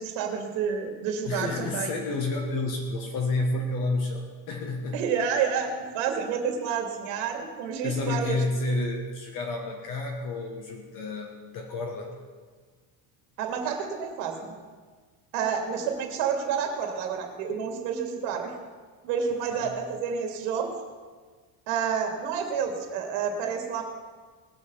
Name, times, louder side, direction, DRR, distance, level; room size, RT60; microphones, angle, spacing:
voice 1, 0.0-1.9 4.9-8.6 13.4-14.5 15.3-18.5 19.0-20.7 21.7-23.8, right 6 dB, 70° right, 3 dB, 2.6 m, -29 dB
voice 2, 1.3-5.0 7.8-12.1 19.5-19.8, left 2 dB, 45° left, 1 dB, 1.7 m, -30 dB
19.5 x 6.9 x 6.9 m, 1.5 s
cardioid pair, 175°, 45 cm